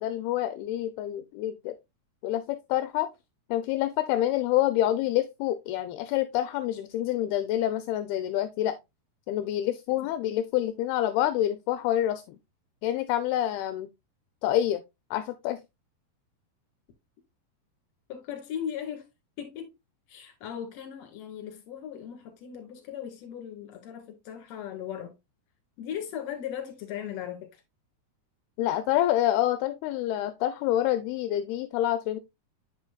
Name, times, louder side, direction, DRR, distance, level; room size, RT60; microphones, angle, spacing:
voice 1, 0.0-1.8 2.2-3.1 3.5-8.8 9.3-12.4 12.8-13.9 14.4-14.8 15.1-15.6 28.6-32.2, left 13 dB, 85° left, 2.3 m, -27 dB
voice 2, 18.1-19.1 19.4-19.7 20.1-25.2 25.8-27.5, left 9 dB, 50° left, 2.4 m, -38 dB
8.3 x 6.0 x 2.2 m
omnidirectional pair, 4.7 m